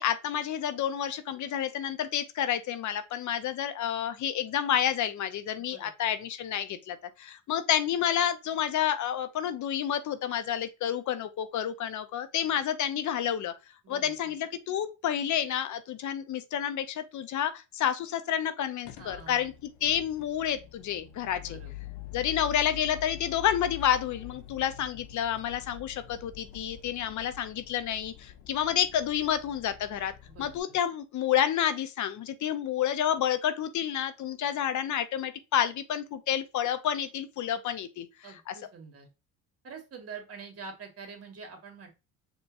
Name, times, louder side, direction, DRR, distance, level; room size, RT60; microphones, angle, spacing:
voice 1, 0.0-13.5 13.9-19.5 19.8-21.6 22.1-30.1 30.4-38.1 38.5-38.6, left 10 dB, 55° left, 0.7 m, -29 dB
voice 2, 5.6-5.9 13.8-14.1 19.0-19.5 21.5-21.7 30.3-30.5 38.2-39.1 39.6-41.9, right 5 dB, 40° right, 1.9 m, -45 dB
sound 1, 18.8-30.6, left 12 dB, 90° left, 0.7 m, -45 dB
5.3 x 3.0 x 2.5 m
supercardioid pair, 85°, 36 cm